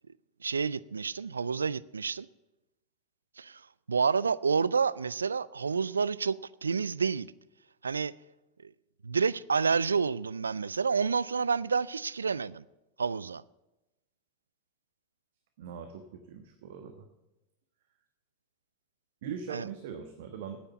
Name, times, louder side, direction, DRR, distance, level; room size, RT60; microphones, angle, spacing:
voice 1, 0.4-2.3 3.4-3.6 3.9-7.3 7.8-8.1 8.6-8.7 9.0-12.6 13.0-13.4 19.5-19.6, right 5 dB, 80° right, 0.3 m, -29 dB
voice 2, 15.6-17.1 19.2-20.6, right 7 dB, 60° right, 1.2 m, -41 dB
9.8 x 9.0 x 9.3 m
figure-of-eight pair, 85°, 0 cm